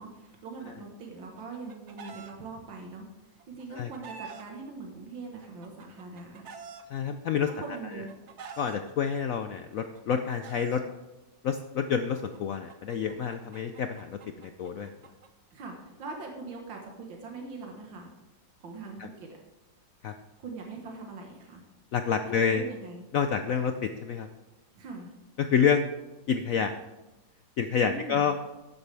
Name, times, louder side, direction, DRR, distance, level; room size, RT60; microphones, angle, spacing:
voice 1, 0.0-3.1 3.5-6.5 7.5-8.1 15.5-18.1 18.6-19.4 20.4-21.6 22.3-23.1 24.8-25.1 27.8-28.3, right 3 dB, 85° right, 1 dB, 2.2 m, -42 dB
Chicken rooster, 1.2-2.3 3.4-4.4 5.4-6.8 7.7-8.8 9.8-10.8 12.0-15.3, right 5 dB, 50° right, 0.9 m, -47 dB
voice 2, 6.9-7.5 7.9-8.0 8.6-10.8 11.4-14.9 19.0-19.1 20.0-20.1 21.9-22.6 23.1-24.3 25.4-25.9 26.3-26.7 27.6-28.4, left 7 dB, 75° left, 8 dB, 0.8 m, -28 dB
12.5 x 9.4 x 3.4 m, 1.1 s
omnidirectional pair, 2.0 m